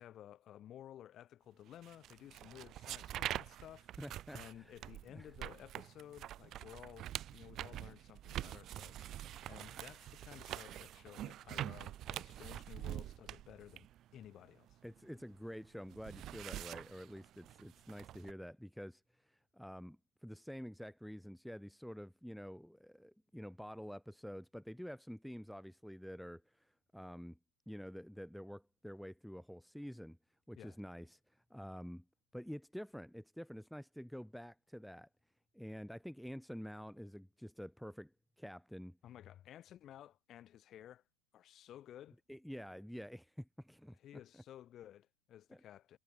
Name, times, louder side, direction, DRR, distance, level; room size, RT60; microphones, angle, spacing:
voice 1, 0.0-3.9 4.3-9.1 9.5-13.9 14.1-14.8 30.6-30.8 39.0-41.0 41.3-42.2 44.0-46.0, left 11 dB, 30° left, 2.0 m, -55 dB
sound 1, 1.8-15.3 15.6-18.3, right 12 dB, 30° right, 0.3 m, -45 dB
voice 2, 4.0-4.7 5.1-5.3 14.8-19.0 19.3-27.4 27.7-30.2 30.5-31.2 31.5-32.0 32.3-35.1 35.5-38.1 38.4-39.0 42.3-44.0 45.5-45.6, equal, ahead, 1.1 m, -48 dB
figure-of-eight pair, 90°, 0 cm